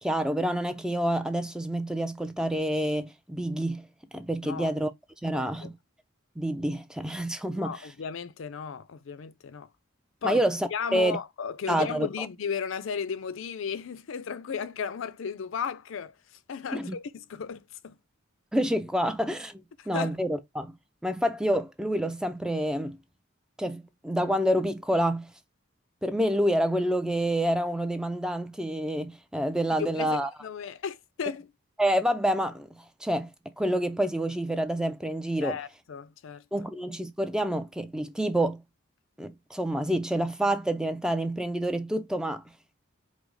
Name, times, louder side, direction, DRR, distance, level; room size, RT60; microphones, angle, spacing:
voice 1, 0.0-3.9 4.1-4.9 5.2-5.7 6.4-7.8 10.2-11.2 11.7-12.1 16.7-17.0 18.5-19.6 19.9-20.8 21.0-23.0 23.6-25.3 26.0-30.3 31.8-33.3 33.6-35.6 36.5-38.6 39.2-42.4, right 1 dB, 5° right, 0.3 m, -28 dB
voice 2, 5.3-5.7 7.5-9.7 10.2-10.4 10.7-18.0 19.8-20.1 29.8-31.5 35.4-36.4, left 6 dB, 70° left, 0.4 m, -35 dB
4.8 x 2.0 x 3.9 m
head